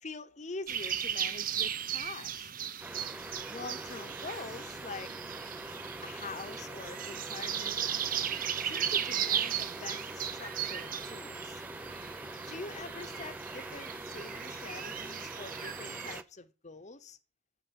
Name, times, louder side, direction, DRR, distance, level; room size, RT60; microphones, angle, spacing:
voice 1, 0.0-2.5 3.5-5.1 6.0-7.8 8.6-11.6 12.4-17.2, left 3 dB, 35° left, 0.9 m, -45 dB
sound 1, 0.7-16.2, right 9 dB, 40° right, 0.7 m, -37 dB
sound 2, 2.8-16.2, right 1 dB, 5° right, 0.5 m, -44 dB
8.1 x 7.8 x 5.9 m
head